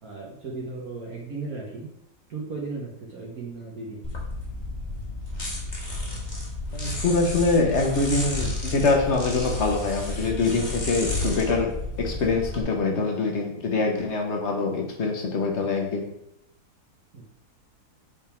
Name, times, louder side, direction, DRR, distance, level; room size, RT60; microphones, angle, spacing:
voice 1, 0.0-1.9 2.3-4.0 17.1-17.2, right 3 dB, 65° right, -4 dB, 1.8 m, -36 dB
sound 1, 4.0-12.6, left 2 dB, 30° left, 1.6 m, -32 dB
voice 2, 6.7-11.7 12.0-16.1, left 3 dB, 45° left, 2 dB, 1.4 m, -24 dB
7.5 x 3.7 x 4.4 m, 0.78 s
omnidirectional pair, 1.7 m